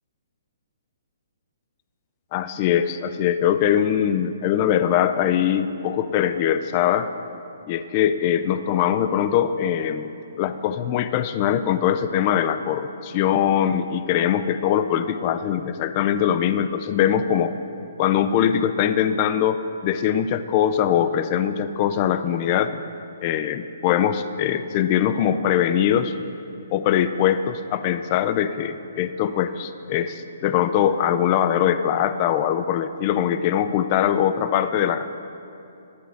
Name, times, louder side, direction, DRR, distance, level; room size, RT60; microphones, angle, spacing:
voice 1, 2.3-7.1 7.7-10.1 10.4-17.5 18.0-22.8 23.2-26.1 26.7-35.1, left 9 dB, 35° left, 12 dB, 0.4 m, -22 dB
11.0 x 4.9 x 7.7 m, 2.7 s
hypercardioid pair, 150°, 0 cm